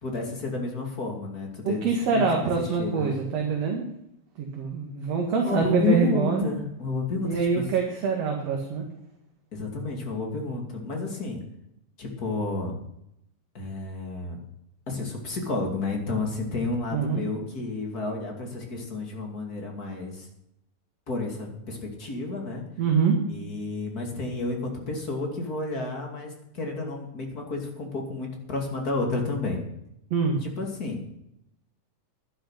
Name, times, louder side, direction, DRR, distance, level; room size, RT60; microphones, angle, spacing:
voice 1, 0.0-1.8 2.1-3.2 5.4-7.7 9.5-11.4 12.0-12.7 13.5-14.4 14.9-20.3 21.1-22.6 23.3-29.6 30.4-31.0, left 3 dB, 30° left, 1 dB, 2.9 m, -31 dB
voice 2, 1.6-3.8 4.4-6.5 7.2-8.8 16.9-17.2 22.8-23.2 30.1-30.4, right 5 dB, 60° right, 0 dB, 2.9 m, -25 dB
11.5 x 11.0 x 5.7 m, 0.80 s
omnidirectional pair, 3.3 m